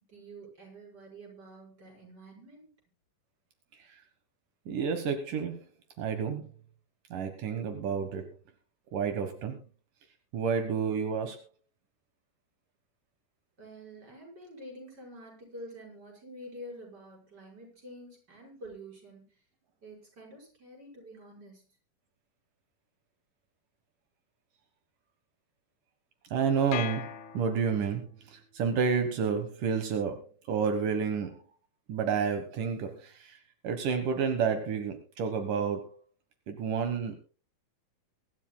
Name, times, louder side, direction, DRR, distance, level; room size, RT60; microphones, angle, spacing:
voice 1, 0.1-2.7 13.6-19.2 19.8-21.6, right 1 dB, 30° right, 0 dB, 6.2 m, -48 dB
voice 2, 4.7-5.6 6.0-6.5 7.1-8.3 8.9-9.6 10.3-11.4 26.3-27.1 27.3-31.3 31.9-33.4 33.6-36.0 36.5-37.2, right 6 dB, 80° right, 6 dB, 3.0 m, -30 dB
sound 1, 26.7-28.1, left 11 dB, 70° left, 1.9 m, -39 dB
24.0 x 12.5 x 2.3 m, 0.35 s
omnidirectional pair, 3.7 m